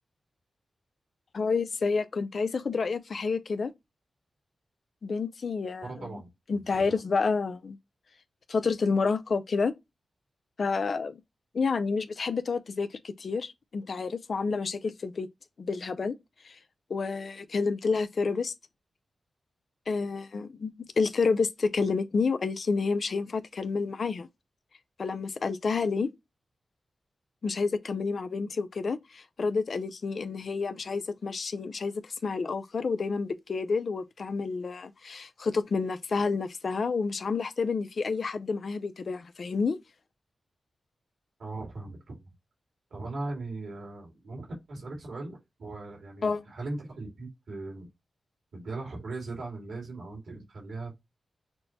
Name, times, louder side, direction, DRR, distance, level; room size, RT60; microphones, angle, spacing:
voice 1, 1.3-3.7 5.0-6.1 6.5-7.8 8.5-9.7 10.6-11.2 11.5-15.3 15.6-16.2 16.4-16.5 16.9-18.5 19.9-24.3 25.0-26.1 27.4-39.8 46.2-46.4, left 4 dB, 65° left, 0.5 m, -29 dB
voice 2, 5.8-6.3 6.7-6.9 41.4-42.2 42.9-47.9 48.5-50.9, right 2 dB, 80° right, 2.0 m, -39 dB
6.1 x 2.2 x 2.7 m
cardioid pair, 55°, 0 cm